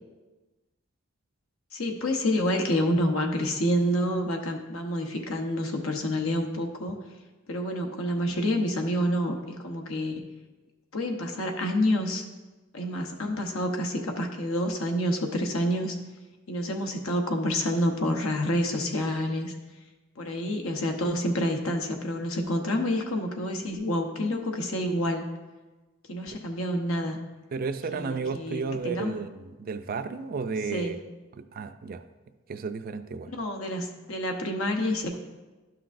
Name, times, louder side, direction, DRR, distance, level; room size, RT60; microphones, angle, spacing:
voice 1, 1.7-7.0 7.5-10.2 10.9-12.2 12.7-16.0 16.5-19.5 20.2-25.2 26.1-27.2 27.9-29.1 30.7-31.0 33.3-35.1, equal, 85° left, 4 dB, 0.9 m, -28 dB
voice 2, 27.5-31.0 31.3-32.0 32.5-33.3, right 4 dB, 45° right, 10 dB, 0.4 m, -33 dB
12.0 x 5.9 x 2.5 m, 1.2 s
head